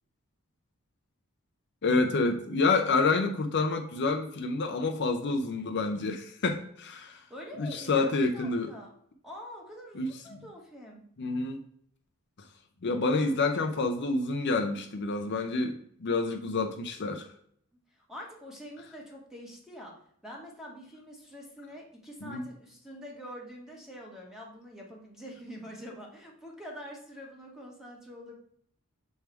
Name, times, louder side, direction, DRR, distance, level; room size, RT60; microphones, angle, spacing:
voice 1, 1.8-7.2 7.6-8.7 9.9-10.1 11.2-11.6 12.8-17.3 22.2-22.4, left 3 dB, 55° left, 5 dB, 0.6 m, -28 dB
voice 2, 7.0-8.9 9.2-11.0 18.1-19.9 20.2-28.4, equal, ahead, -1 dB, 1.4 m, -45 dB
6.4 x 3.4 x 4.5 m, 0.65 s
head